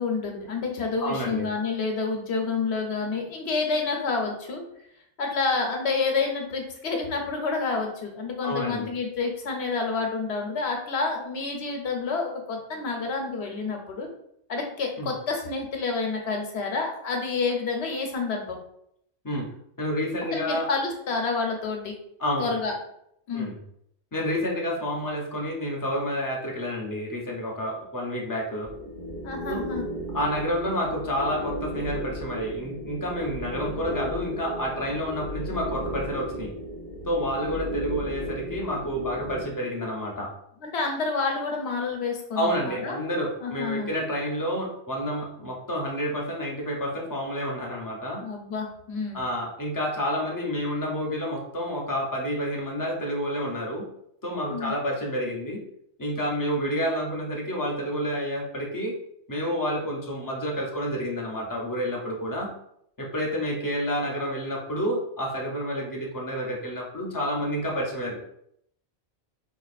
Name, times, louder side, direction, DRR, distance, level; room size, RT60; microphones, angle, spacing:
voice 1, 0.0-4.6 5.2-14.1 14.5-18.6 20.3-21.9 22.4-22.7 23.3-23.5 29.2-29.8 40.6-43.0 43.4-43.9 48.2-49.2 54.5-54.7, left 4 dB, 70° left, 2 dB, 1.0 m, -29 dB
voice 2, 1.0-1.5 8.4-8.9 15.0-15.1 19.2-19.4 19.8-20.7 22.2-22.5 23.3-23.6 24.1-28.7 29.5-29.6 30.1-36.5 37.0-40.3 42.4-48.2 49.1-53.8 54.2-55.6 56.0-58.9 59.3-62.5 63.0-68.2, equal, 20° left, -1 dB, 0.6 m, -29 dB
sound 1, 28.6-39.4, equal, 45° right, 0.6 m, -35 dB
4.5 x 2.4 x 2.4 m, 0.73 s
omnidirectional pair, 1.1 m